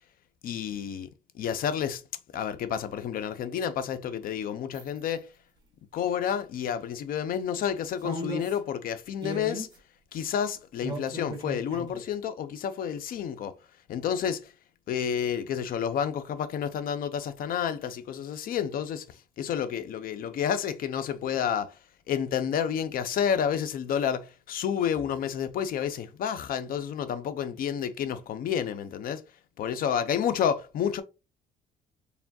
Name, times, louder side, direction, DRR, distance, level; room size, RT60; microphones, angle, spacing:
voice 1, 0.4-1.1 1.3-2.0 2.3-5.3 5.9-9.7 10.1-13.5 13.9-14.5 14.9-21.8 22.1-29.2 29.6-31.0, left 8 dB, 60° left, 0.6 m, -30 dB
sound 1, 4.7-5.0 6.1-6.3 8.0-8.6 9.2-9.8 10.8-12.0, right 1 dB, 25° right, 1.5 m, -36 dB
4.6 x 3.3 x 2.6 m
cardioid pair, 110°, 17 cm